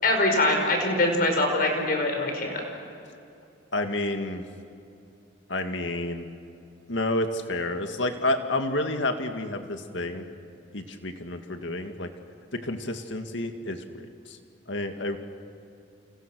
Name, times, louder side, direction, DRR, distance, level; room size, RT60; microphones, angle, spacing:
voice 1, 0.0-2.6, left 2 dB, 45° left, 3 dB, 5.4 m, -23 dB
voice 2, 3.7-4.4 5.5-6.3 6.9-10.3 10.7-12.1 12.5-14.4 14.7-15.2, left 2 dB, 70° left, 6 dB, 2.1 m, -30 dB
29.5 x 28.5 x 6.4 m, 2.6 s
head